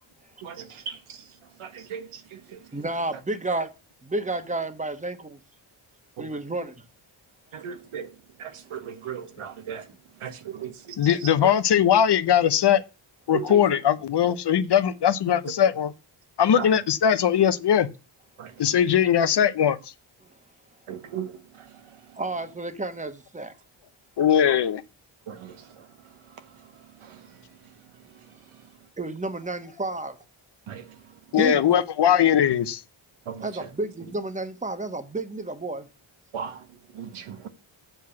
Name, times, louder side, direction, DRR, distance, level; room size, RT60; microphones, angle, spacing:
voice 1, 0.4-1.0 1.6-2.6 6.2-6.3 7.5-8.1 8.4-9.8 10.2-10.9 13.3-13.6 16.6-16.7 18.4-18.5 20.9-21.3 25.3-25.6 27.1-27.2 30.7-30.8 33.3-33.5 36.3-36.6 36.9-37.5, right 8 dB, 80° right, 1.4 m, -36 dB
voice 2, 2.7-3.7 4.0-5.4 6.2-6.7 22.2-23.5 29.0-30.2 31.4-31.7 33.4-35.9, right 2 dB, 15° right, 1.2 m, -31 dB
voice 3, 11.0-12.8 13.3-15.9 16.4-17.9 18.6-19.8 24.2-24.8 31.3-32.8, left 9 dB, 55° left, 0.8 m, -20 dB
7.9 x 4.7 x 7.0 m
cardioid pair, 105°, 50 cm